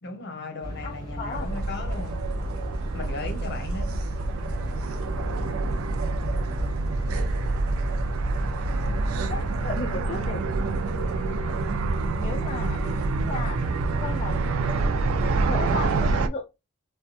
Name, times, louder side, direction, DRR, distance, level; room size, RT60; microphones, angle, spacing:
voice 1, 0.0-2.2 2.9-3.9, left 3 dB, 55° left, 0.8 m, -36 dB
sound 1, 0.6-9.6, equal, 20° right, 1.5 m, -35 dB
voice 2, 0.8-1.5 5.5-6.0 7.4-7.6 9.3-10.4 12.2-12.9 13.2-13.6 14.0-14.4 15.2-16.4, left 4 dB, 30° left, 0.4 m, -35 dB
sound 2, 1.3-16.3, right 3 dB, 90° right, 0.4 m, -27 dB
2.7 x 2.3 x 2.3 m
head